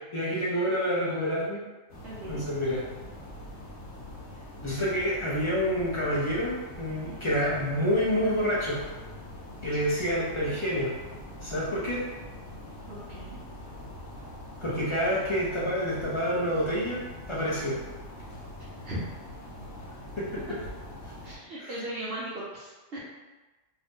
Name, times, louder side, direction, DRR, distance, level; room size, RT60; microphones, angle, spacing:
voice 1, 0.1-1.6 2.3-2.8 4.6-8.8 9.6-10.9 11.4-12.0 14.6-17.0 17.3-17.8 20.2-20.3 21.6-21.7, equal, 45° left, -6 dB, 0.4 m, -28 dB
sound 1, 1.9-21.4, left 1 dB, 70° left, 1.0 m, -43 dB
voice 2, 2.0-2.4 7.0-7.4 9.7-9.9 12.9-13.4 18.8-19.0 20.3-20.4 21.2-23.0, right 1 dB, 60° right, -8 dB, 0.9 m, -38 dB
2.7 x 2.5 x 3.5 m, 1.2 s
omnidirectional pair, 1.3 m